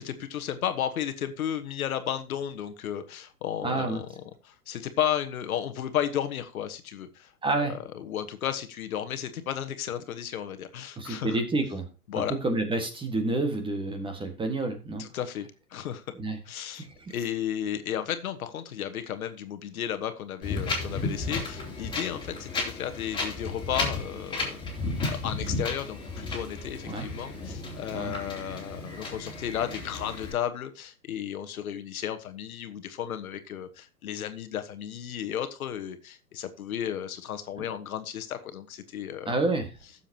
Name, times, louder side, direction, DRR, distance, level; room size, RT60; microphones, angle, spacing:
voice 1, 0.0-7.3 7.6-11.4 12.1-12.3 15.0-16.0 16.4-24.6 25.1-39.3, left 10 dB, 65° left, 10 dB, 1.5 m, -33 dB
voice 2, 3.6-4.0 7.4-7.7 11.0-11.9 12.4-15.0 16.2-16.4 17.0-17.1 26.9-27.1 27.9-28.1 39.3-39.7, right 2 dB, 10° right, 6 dB, 1.7 m, -28 dB
Wind, 20.4-30.3, left 3 dB, 10° left, 3.6 m, -33 dB
15.0 x 7.2 x 2.9 m, 0.30 s
hypercardioid pair, 120°, 46 cm